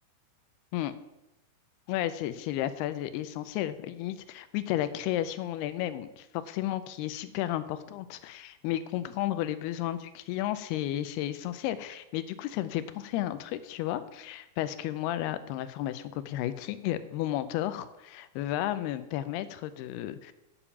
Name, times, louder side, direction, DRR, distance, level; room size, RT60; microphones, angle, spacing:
voice 1, 1.9-20.3, left 13 dB, 85° left, 13 dB, 2.6 m, -33 dB
8.7 x 7.0 x 7.0 m, 0.94 s
omnidirectional pair, 4.7 m